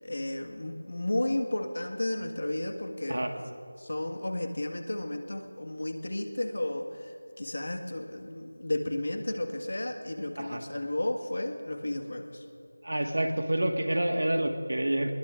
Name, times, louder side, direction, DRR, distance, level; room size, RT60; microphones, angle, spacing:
voice 1, 0.0-3.2 3.8-7.1 7.4-12.4, left 1 dB, 65° left, 5 dB, 1.6 m, -33 dB
voice 2, 12.8-15.1, right 1 dB, 70° right, 5 dB, 1.6 m, -28 dB
24.5 x 21.0 x 2.5 m, 2.5 s
figure-of-eight pair, 175°, 0 cm